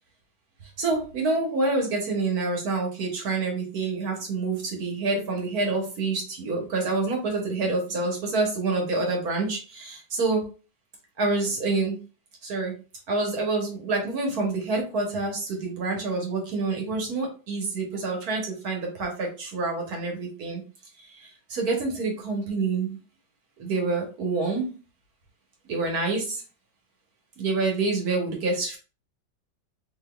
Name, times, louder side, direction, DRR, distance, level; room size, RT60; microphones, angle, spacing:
voice 1, 0.8-10.5 11.2-12.0 12.4-12.7 13.1-20.6 21.0-23.0 23.6-24.7 25.7-26.4 27.4-28.8, right 3 dB, 60° right, 1 dB, 1.2 m, -27 dB
3.9 x 3.1 x 2.2 m, 0.35 s
omnidirectional pair, 2.1 m